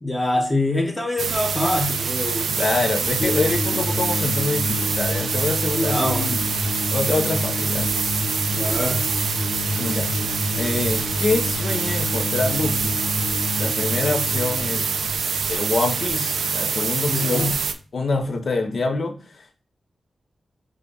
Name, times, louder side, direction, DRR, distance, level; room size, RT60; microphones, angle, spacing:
voice 1, 0.0-2.5 5.7-6.3 8.5-9.1 17.1-17.5, left 2 dB, 10° left, 0.9 m, -24 dB
sound 1, 1.2-17.7, right 6 dB, 80° right, 0.4 m, -25 dB
voice 2, 2.5-6.4 6.9-7.9 9.8-10.1 10.5-13.1 13.5-14.9 15.5-17.6 17.9-19.6, left 3 dB, 55° left, 0.8 m, -26 dB
sound 2, 3.2-16.3, left 4 dB, 90° left, 1.0 m, -29 dB
5.0 x 2.3 x 3.9 m
wide cardioid pair, 115°, 0 cm